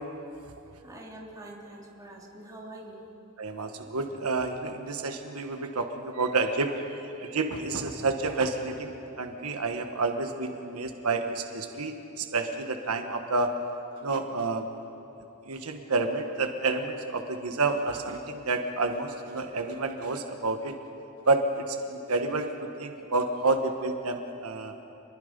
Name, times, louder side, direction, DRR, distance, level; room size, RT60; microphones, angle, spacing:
voice 1, 0.8-3.0, right 1 dB, 15° right, -3 dB, 3.3 m, -45 dB
voice 2, 3.4-13.5 14.0-14.7 15.5-20.7 21.3-22.5 22.8-24.7, right 3 dB, 85° right, 5 dB, 1.3 m, -29 dB
28.0 x 21.5 x 5.3 m, 2.9 s
head